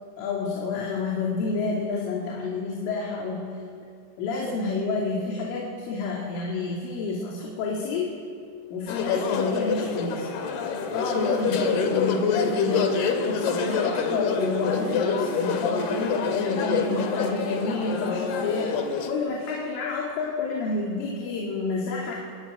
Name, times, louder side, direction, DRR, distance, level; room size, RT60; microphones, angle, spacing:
voice 1, 0.2-3.6 4.2-8.1 8.7-10.3 10.9-18.8 19.1-22.2, left 4 dB, 80° left, -2 dB, 5.3 m, -29 dB
sound 1, 8.9-19.1, left 5 dB, 60° left, 3.7 m, -27 dB
29.0 x 22.0 x 9.1 m, 2.4 s
omnidirectional pair, 5.6 m